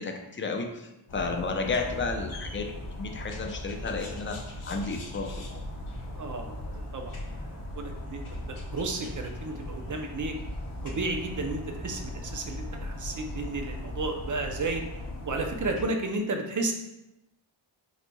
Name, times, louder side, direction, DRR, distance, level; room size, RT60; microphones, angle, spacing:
voice 1, 0.0-5.6, left 4 dB, 25° left, 4 dB, 0.5 m, -33 dB
sound 1, 1.1-15.8, left 1 dB, 80° left, 0.8 m, -38 dB
voice 2, 6.1-10.3 10.8-14.8 15.2-16.7, right 2 dB, 40° right, 4 dB, 0.6 m, -33 dB
3.9 x 3.0 x 2.2 m, 0.93 s
cardioid pair, 45°, 48 cm